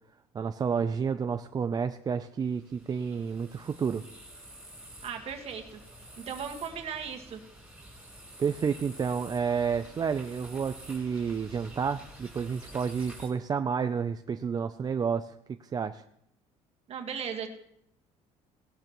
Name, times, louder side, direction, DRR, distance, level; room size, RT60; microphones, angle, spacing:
voice 1, 0.3-4.0 8.4-16.0, right 6 dB, 30° right, 9 dB, 0.4 m, -30 dB
sound 1, 2.4-13.3, right 1 dB, 5° right, 4.0 m, -49 dB
voice 2, 5.0-5.8 6.3-7.4 16.9-17.5, right 7 dB, 50° right, 3 dB, 1.7 m, -37 dB
17.5 x 12.0 x 3.1 m, 0.75 s
cardioid pair, 110°, 14 cm